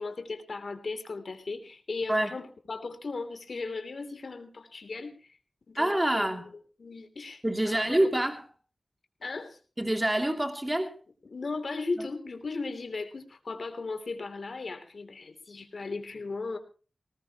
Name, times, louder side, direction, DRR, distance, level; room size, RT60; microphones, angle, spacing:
voice 1, 0.0-5.2 5.7-6.3 6.8-8.1 9.2-9.6 11.2-16.6, left 3 dB, 70° left, 3.2 m, -37 dB
voice 2, 5.8-6.5 7.4-8.4 9.8-10.9 12.0-12.1, right 1 dB, 20° right, 2.8 m, -26 dB
19.5 x 19.0 x 3.1 m
wide cardioid pair, 60°, 0 cm